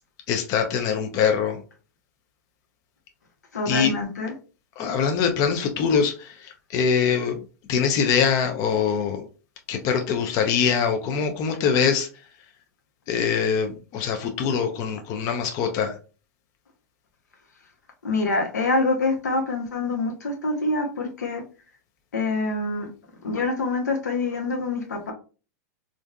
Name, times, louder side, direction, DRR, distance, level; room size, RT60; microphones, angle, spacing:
voice 1, 0.3-1.6 3.7-3.9 4.8-7.4 7.7-9.2 9.7-12.1 13.1-15.9, left 6 dB, 40° left, 5 dB, 0.5 m, -23 dB
voice 2, 3.5-4.3 18.0-21.4 22.1-22.9 23.2-25.1, left 3 dB, 90° left, 2 dB, 1.0 m, -25 dB
3.4 x 2.5 x 2.2 m, 0.35 s
hypercardioid pair, 115°, 9 cm